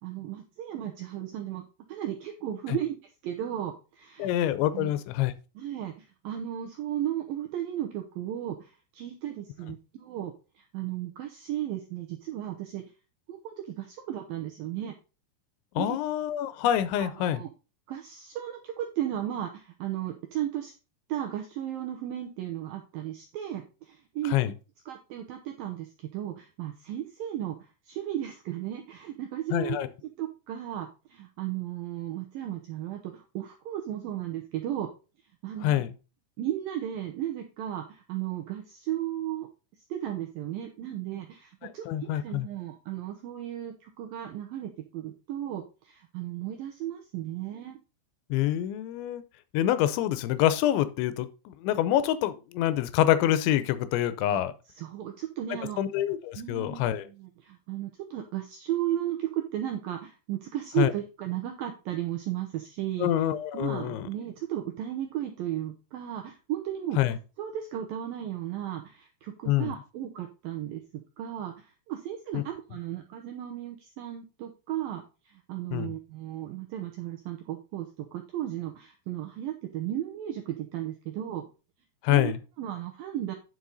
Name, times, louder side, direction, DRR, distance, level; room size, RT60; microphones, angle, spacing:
voice 1, 0.0-1.6 1.9-3.0 3.2-4.3 4.7-4.9 5.6-12.8 13.3-14.9 15.8-16.0 17.0-17.5 17.9-20.7 21.1-24.4 24.9-29.8 30.2-34.9 35.4-35.8 36.4-39.5 39.9-47.8 54.3-54.4 54.8-55.8 56.4-56.9 57.2-63.1 63.5-67.0 67.4-81.5 82.1-82.3 82.6-83.3, right 12 dB, 80° right, 4 dB, 2.1 m, -35 dB
voice 2, 4.2-5.3 15.8-17.4 24.2-24.5 29.5-29.9 35.6-35.9 41.6-42.5 48.3-49.2 49.5-54.5 55.8-57.1 60.8-60.9 63.0-64.1 67.0-67.2 69.5-69.7 72.3-72.4 75.7-75.9 82.0-82.4, left 12 dB, 85° left, 14 dB, 3.0 m, -26 dB
9.7 x 5.9 x 4.0 m, 0.32 s
omnidirectional pair, 5.2 m